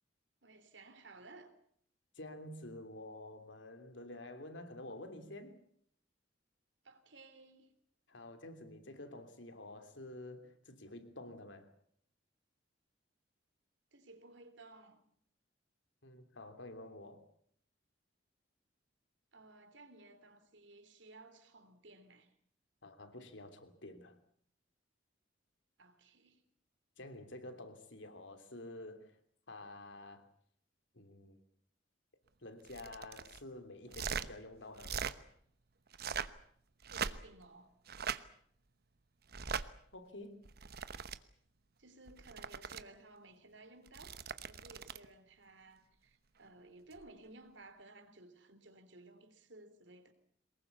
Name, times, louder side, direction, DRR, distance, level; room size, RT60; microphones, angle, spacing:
voice 1, 0.4-1.5 6.8-7.7 13.9-15.0 19.3-22.3 25.8-26.4 36.9-37.8 41.8-50.1, right 2 dB, 70° right, 3.3 m, -57 dB
voice 2, 2.1-5.6 8.1-11.7 16.0-17.3 22.8-24.2 27.0-29.2 29.5-30.3 30.9-31.4 32.4-35.1 39.9-40.4, left 1 dB, 75° left, 3.1 m, -49 dB
sound 1, 32.6-33.4 33.9-34.3 34.8-35.2 35.9-36.4 36.8-37.4 37.9-38.2 39.3-39.7 40.5-41.2 42.1-42.8 43.9-45.1 46.9-47.1, right 6 dB, 55° right, 1.0 m, -40 dB
23.0 x 21.0 x 8.2 m
head